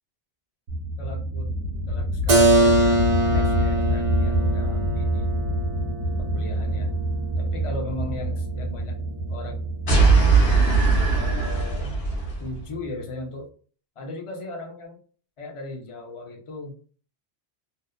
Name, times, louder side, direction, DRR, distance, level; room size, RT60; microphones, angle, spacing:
sound 1, 0.7-13.1, equal, 85° right, 1.0 m, -27 dB
voice 1, 1.0-1.6 1.9-5.3 6.1-6.9 7.4-9.0 9.3-9.6 11.1-11.9 12.4-13.5 14.0-15.0 15.4-16.8, left 2 dB, 40° left, 2 dB, 0.5 m, -37 dB
Keyboard (musical), 2.3-7.9, right 1 dB, 60° right, 0.3 m, -23 dB
sound 2, 9.9-12.4, right 4 dB, 65° left, 1.0 m, -19 dB
2.7 x 2.1 x 2.3 m, 0.42 s
omnidirectional pair, 1.1 m